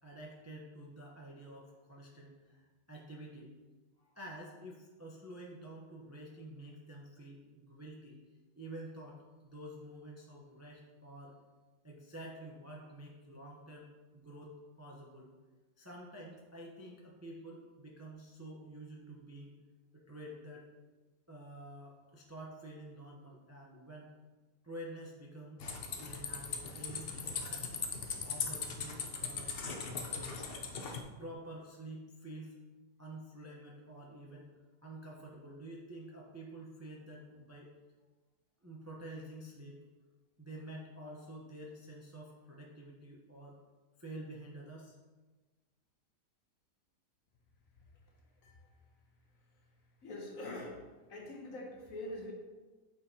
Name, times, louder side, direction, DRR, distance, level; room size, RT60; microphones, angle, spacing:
voice 1, 0.0-3.5 4.0-8.1 8.6-9.2 9.4-11.3 11.8-15.3 15.8-19.5 19.9-20.6 21.3-24.1 24.6-25.6 26.0-27.6 28.2-30.3 31.2-32.6 33.0-34.5 34.8-37.7 38.6-39.8 40.4-43.6 44.0-45.0, right 1 dB, 25° right, -3 dB, 0.3 m, -49 dB
sound 1, 25.6-31.0, left 5 dB, 75° left, 0.5 m, -39 dB
voice 2, 48.4-48.7 50.0-52.3, left 1 dB, 55° left, 1 dB, 1.3 m, -44 dB
8.7 x 4.7 x 2.8 m, 1.3 s
omnidirectional pair, 1.8 m